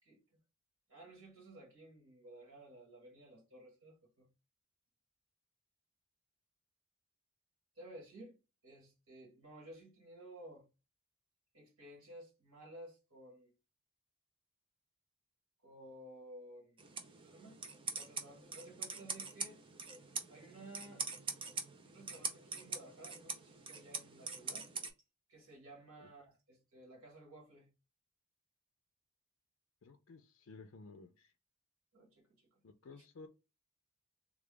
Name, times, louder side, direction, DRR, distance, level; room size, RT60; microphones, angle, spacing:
voice 1, 0.9-4.3 7.8-8.3 8.6-10.7 11.5-13.5 15.6-16.8 17.2-17.6 17.9-19.6 20.3-21.0 21.9-24.7 25.3-27.7 31.9-32.6 33.0-33.1, right 1 dB, 80° right, 2.0 m, -55 dB
sound 1, 16.8-24.9, right 4 dB, 25° right, 0.5 m, -44 dB
voice 2, 29.8-31.3 32.6-33.3, left 3 dB, 60° left, 0.4 m, -55 dB
3.5 x 2.3 x 3.7 m
head